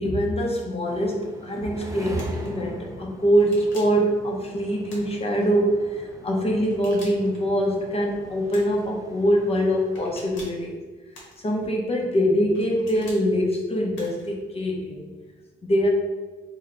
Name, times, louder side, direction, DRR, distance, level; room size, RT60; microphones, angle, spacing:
voice 1, 0.0-10.8 11.4-15.1 15.6-15.9, equal, 30° left, 0 dB, 0.7 m, -23 dB
sound 1, 0.9-10.3, right 2 dB, 15° right, 0.4 m, -43 dB
sound 2, 2.2-2.5 3.4-4.0 4.9-5.5 6.6-7.4 8.5-8.9 9.9-10.6 11.1-11.7 12.5-13.2 13.9-14.3, left 1 dB, 75° left, 1.3 m, -46 dB
3.3 x 2.8 x 3.7 m, 1.3 s
cardioid pair, 90°, 20 cm